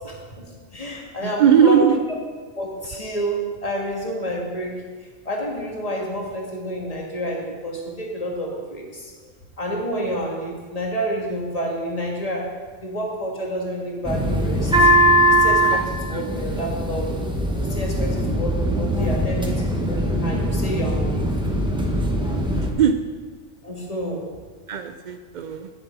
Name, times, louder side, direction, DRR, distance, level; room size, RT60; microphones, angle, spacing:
voice 1, 0.0-2.0 2.5-4.7 5.2-9.1 9.6-12.5 12.8-14.9 15.3-17.1 17.6-21.3 21.7-21.8 23.6-24.2, equal, 30° left, -1 dB, 1.7 m, -29 dB
voice 2, 1.2-2.0 16.1-16.3 22.5-22.9 24.7-25.7, right 8 dB, 85° right, 8 dB, 0.4 m, -19 dB
sound 1, 14.0-22.7, equal, 5° right, 0.9 m, -21 dB
9.7 x 7.7 x 4.8 m, 1.5 s
omnidirectional pair, 1.4 m